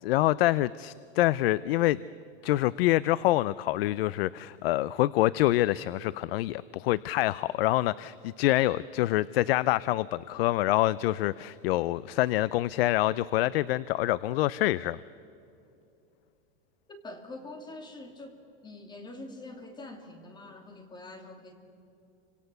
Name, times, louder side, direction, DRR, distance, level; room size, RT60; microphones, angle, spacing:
voice 1, 0.0-2.0 2.4-15.0, left 16 dB, 70° left, 19 dB, 0.6 m, -26 dB
voice 2, 16.9-21.5, left 2 dB, 15° left, 5 dB, 2.6 m, -45 dB
29.5 x 26.0 x 6.8 m, 2.7 s
supercardioid pair, 155°, 30 cm